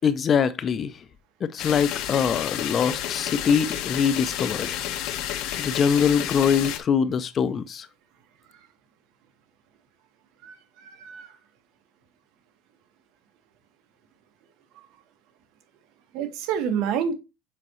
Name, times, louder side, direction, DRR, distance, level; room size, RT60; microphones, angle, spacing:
voice 1, 0.0-0.9 1.4-4.8 5.6-7.9, left 7 dB, 25° left, 0.4 m, -23 dB
sound 1, 1.6-6.8, left 11 dB, 55° left, 1.1 m, -30 dB
voice 2, 10.4-11.3 16.1-17.1, right 8 dB, 55° right, 1.6 m, -28 dB
7.5 x 5.1 x 3.0 m
cardioid pair, 155°, 0 cm